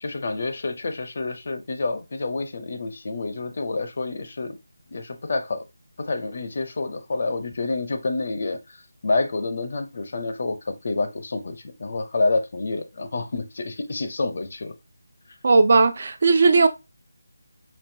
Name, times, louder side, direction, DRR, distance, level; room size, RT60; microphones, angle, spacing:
voice 1, 0.0-4.6 4.9-5.6 6.0-8.8 9.0-14.7, left 3 dB, 45° left, 0.6 m, -28 dB
voice 2, 15.4-16.7, right 3 dB, 45° right, 0.4 m, -17 dB
5.3 x 2.6 x 2.6 m
figure-of-eight pair, 170°, 0 cm